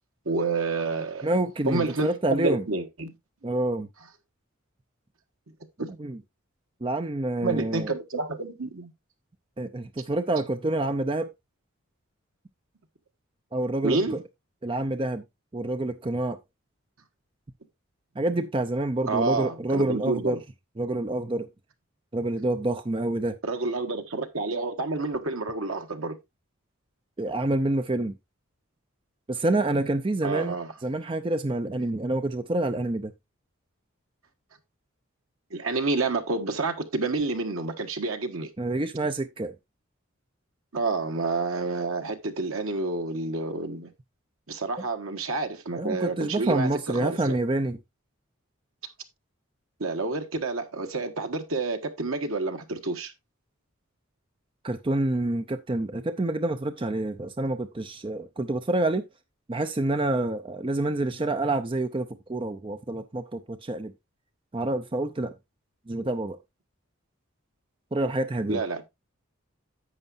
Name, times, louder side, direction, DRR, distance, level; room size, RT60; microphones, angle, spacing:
voice 1, 0.2-1.3 1.7-3.1 5.8-5.9 7.4-8.9 13.8-14.1 19.1-20.4 23.4-26.2 30.2-30.7 35.5-38.5 40.7-43.9 44.5-47.4 49.8-53.1 68.5-68.9, right 3 dB, 75° right, 1.4 m, -29 dB
voice 2, 1.2-2.7 3.4-3.9 6.0-6.2 6.8-7.9 9.6-11.3 13.5-14.2 14.6-15.2 15.5-16.4 18.2-20.4 20.8-21.5 22.1-23.4 27.2-28.1 29.3-30.6 30.8-33.1 38.6-39.6 45.8-47.8 54.6-59.0 59.5-63.9 64.5-65.3 65.9-66.4 67.9-68.6, right 2 dB, 25° right, 0.5 m, -27 dB
11.0 x 8.2 x 2.6 m
head